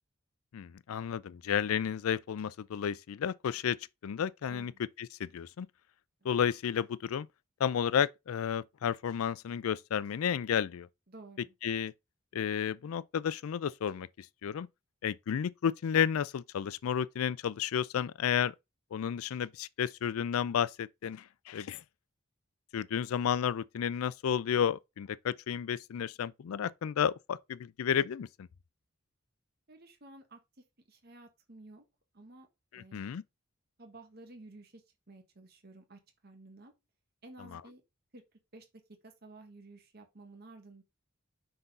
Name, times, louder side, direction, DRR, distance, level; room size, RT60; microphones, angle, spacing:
voice 1, 0.5-3.8 4.0-4.7 5.0-5.7 6.2-7.3 7.6-10.9 11.6-11.9 12.3-14.1 14.4-14.7 15.0-18.5 18.9-21.8 22.7-28.3 32.7-33.2, left 8 dB, 90° left, 0.4 m, -32 dB
voice 2, 4.5-4.8 6.2-6.3 11.1-11.5 29.7-31.8 32.1-32.5 32.7-33.1 33.8-36.7 37.2-37.8 38.1-38.2 38.5-38.7 39.0-40.8, right 2 dB, 50° right, 1.4 m, -53 dB
5.9 x 3.9 x 5.3 m
head